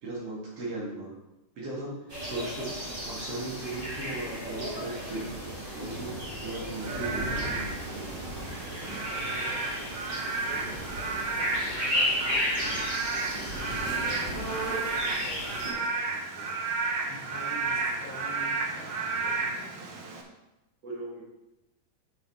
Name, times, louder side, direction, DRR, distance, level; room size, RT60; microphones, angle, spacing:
voice 1, 0.0-1.2 1.6-2.7 3.0-5.3 5.7-7.6 20.8-21.2, right 2 dB, 50° right, -4 dB, 2.7 m, -37 dB
sound 1, 2.1-15.7, equal, 20° right, 1.7 m, -33 dB
Frog / Rain, 6.7-20.2, right 4 dB, 85° right, 1.1 m, -33 dB
voice 2, 9.1-13.0 13.6-16.5 17.1-20.0, left 2 dB, 80° left, -2 dB, 3.7 m, -48 dB
7.9 x 6.8 x 4.9 m, 0.97 s
omnidirectional pair, 4.0 m